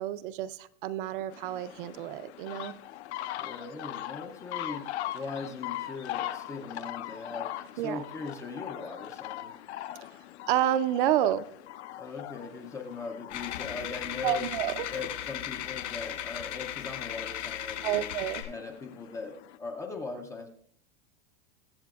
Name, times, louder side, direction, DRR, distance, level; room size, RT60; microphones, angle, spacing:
voice 1, 0.0-2.7 7.8-8.0 10.5-11.5 14.2-14.9 17.8-18.4, right 12 dB, 50° right, 13 dB, 0.5 m, -29 dB
sound 1, 1.3-19.6, left 13 dB, 70° left, 0.7 m, -41 dB
voice 2, 3.4-4.9 5.1-9.5 11.9-14.5 14.9-18.1 18.4-20.5, left 4 dB, 10° left, 3 dB, 0.4 m, -40 dB
sound 2, 13.3-18.4, left 11 dB, 85° left, 5.3 m, -37 dB
21.5 x 8.1 x 2.3 m, 0.63 s
supercardioid pair, 160°, 35 cm